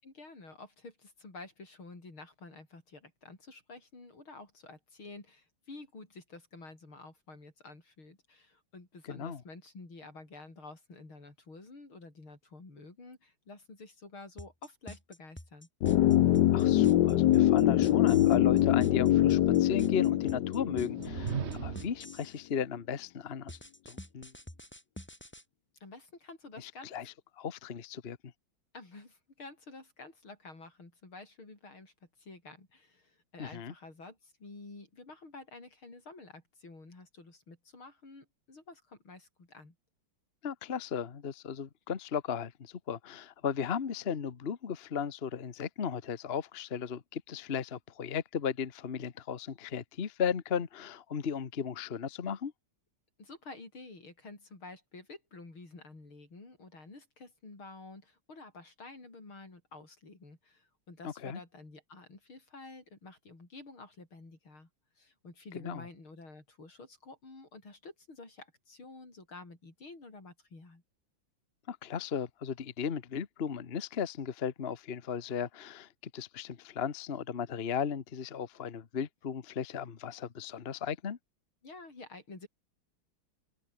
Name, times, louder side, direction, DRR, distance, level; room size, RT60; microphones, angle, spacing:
voice 1, 0.0-15.7 25.8-26.9 28.7-31.9 32.2-39.8 53.2-64.7 65.0-70.8 81.6-82.5, left 3 dB, 90° left, 7.1 m, -50 dB
voice 2, 9.1-9.4 16.5-23.6 23.9-24.3 26.6-28.3 33.4-33.7 40.4-52.5 61.0-61.4 65.6-65.8 71.7-81.2, left 7 dB, 35° left, 1.2 m, -36 dB
sound 1, 14.4-22.4 23.5-25.4, left 1 dB, 5° left, 2.5 m, -46 dB
sound 2, 15.8-21.8 22.1-22.2, left 13 dB, 65° left, 1.3 m, -24 dB
sound 3, 20.7-22.1, right 8 dB, 45° right, 0.9 m, -37 dB
omnidirectional pair, 2.2 m